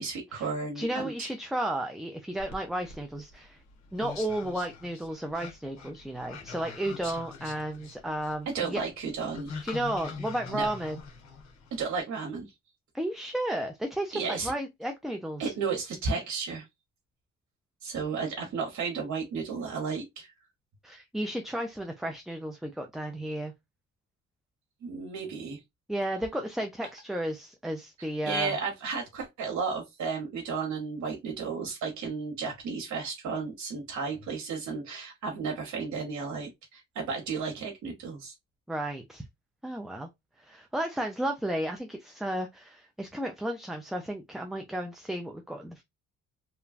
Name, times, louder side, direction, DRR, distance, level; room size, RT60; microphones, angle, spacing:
voice 1, 0.0-1.3 8.5-9.7 10.5-10.7 11.7-12.5 14.1-14.5 15.4-16.6 17.8-20.3 24.8-25.6 28.0-38.3, right 5 dB, 70° right, 1.0 m, -33 dB
voice 2, 0.8-3.6 3.9-8.8 9.6-11.0 12.9-15.5 20.8-23.5 25.9-28.6 38.7-39.2 39.6-40.1 40.4-45.8, right 1 dB, ahead, 0.4 m, -33 dB
sound 1, 2.4-12.0, left 5 dB, 65° left, 1.1 m, -43 dB
3.1 x 2.2 x 2.4 m
cardioid pair, 90°, 30 cm